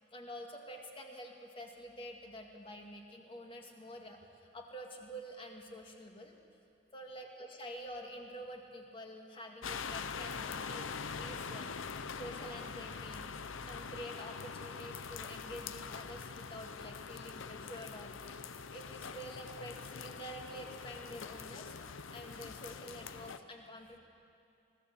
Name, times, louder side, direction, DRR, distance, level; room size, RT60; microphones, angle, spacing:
voice 1, 0.1-6.4 6.9-13.3 13.7-21.8 22.1-24.0, equal, 25° left, 2 dB, 2.0 m, -48 dB
sound 1, 9.6-23.4, left 5 dB, 80° left, 0.7 m, -44 dB
23.5 x 15.5 x 7.1 m, 2.6 s
head